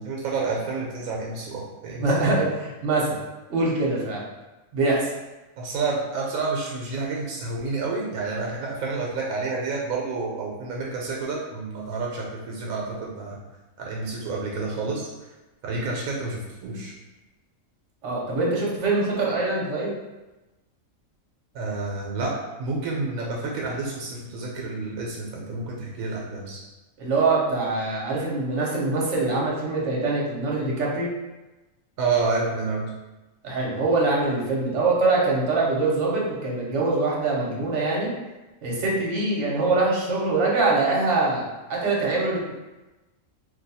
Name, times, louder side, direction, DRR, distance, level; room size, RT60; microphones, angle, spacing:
voice 1, 0.0-2.4 5.6-13.4 13.8-15.1 15.6-16.9 21.5-26.6 32.0-32.9, right 3 dB, 85° right, -2 dB, 1.0 m, -29 dB
voice 2, 2.0-3.2 3.5-4.2 4.7-5.1 18.0-19.9 27.0-31.1 33.4-38.1 38.6-41.4 41.7-42.5, right 3 dB, 60° right, -4 dB, 1.1 m, -23 dB
2.6 x 2.2 x 4.0 m, 1.1 s
omnidirectional pair, 1.4 m